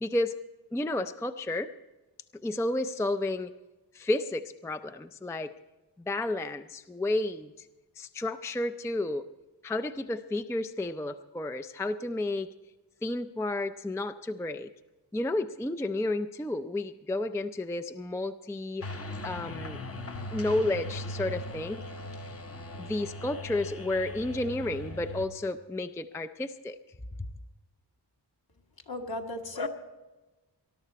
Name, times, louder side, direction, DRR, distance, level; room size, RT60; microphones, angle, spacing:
voice 1, 0.0-0.4 0.7-1.7 2.4-3.5 3.9-5.5 6.1-7.7 8.0-9.3 9.6-12.5 13.0-14.7 15.1-18.9 19.2-19.8 20.3-21.8 22.8-26.8, left 2 dB, 5° left, 9 dB, 0.4 m, -31 dB
sound 1, 18.8-25.3, left 1 dB, 35° left, 0.8 m, -39 dB
voice 2, 28.9-29.7, left 2 dB, 55° left, 3 dB, 1.6 m, -34 dB
20.0 x 12.0 x 4.2 m, 1.1 s
wide cardioid pair, 110°, 43 cm